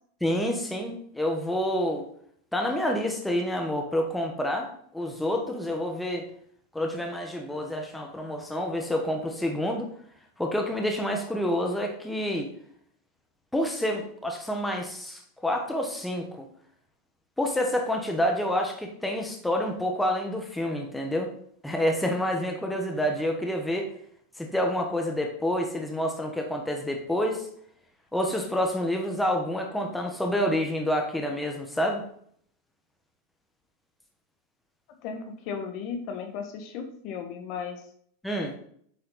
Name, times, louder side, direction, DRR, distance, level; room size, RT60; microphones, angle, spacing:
voice 1, 0.2-2.0 2.5-6.3 6.7-9.9 10.4-12.5 13.5-16.5 17.4-21.3 21.6-23.9 24.4-27.5 28.1-32.0 38.2-38.5, equal, 5° left, 2 dB, 1.3 m, -28 dB
voice 2, 35.0-37.9, left 6 dB, 50° left, 5 dB, 1.4 m, -35 dB
8.4 x 4.3 x 4.0 m, 0.63 s
supercardioid pair, 125°, 0 cm